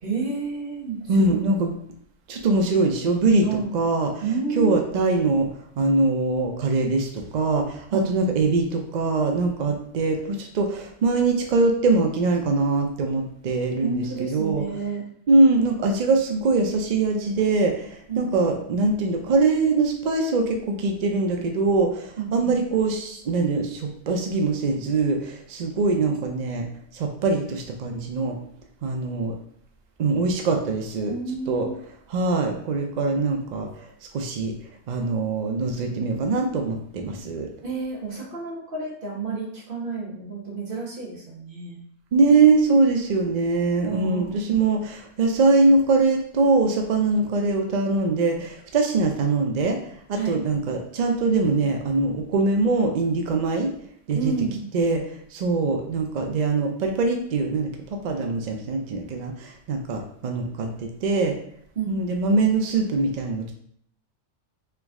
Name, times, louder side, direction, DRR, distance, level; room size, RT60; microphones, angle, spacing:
voice 1, 0.0-1.6 3.4-3.7 4.2-4.8 7.9-8.3 13.8-15.0 18.1-18.5 22.2-22.5 31.0-31.7 37.6-41.8 43.8-44.4 50.1-50.4 54.1-54.7 61.7-62.1, right 4 dB, 45° right, -3 dB, 1.2 m, -30 dB
voice 2, 1.1-1.7 2.3-3.5 3.7-4.1 4.6-5.5 5.8-14.6 15.3-26.6 26.9-28.4 28.8-29.4 30.0-31.1 31.5-31.7 32.1-33.7 34.1-34.5 34.9-37.5 42.1-49.8 50.1-53.7 54.1-54.3 54.7-61.4 61.9-63.5, right 3 dB, 65° right, 3 dB, 0.4 m, -22 dB
3.4 x 3.0 x 3.5 m, 0.66 s
omnidirectional pair, 1.3 m